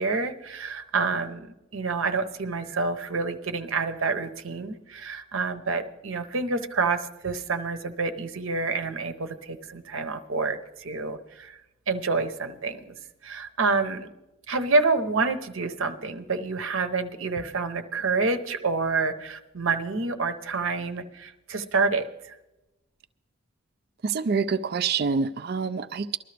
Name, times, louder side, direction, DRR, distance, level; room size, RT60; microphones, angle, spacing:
voice 1, 0.0-11.6 11.9-12.9 13.2-14.1 14.5-22.3, right 4 dB, 75° right, 0.9 m, -28 dB
voice 2, 24.0-26.2, right 5 dB, 50° right, 0.4 m, -26 dB
20.0 x 12.5 x 3.4 m
head